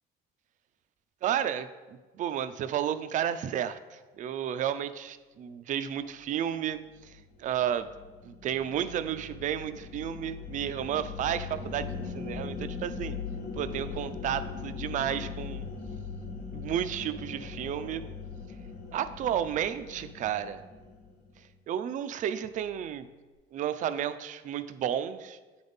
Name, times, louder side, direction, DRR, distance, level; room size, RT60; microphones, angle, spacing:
voice 1, 1.2-7.9 8.2-13.1 13.6-15.6 16.5-18.0 18.9-20.6 21.7-23.1 23.5-25.4, right 10 dB, 50° right, 12 dB, 0.4 m, -32 dB
sound 1, 6.9-21.4, left 5 dB, 60° left, 1.0 m, -40 dB
9.3 x 3.9 x 3.5 m, 1.3 s
cardioid pair, 110°, 17 cm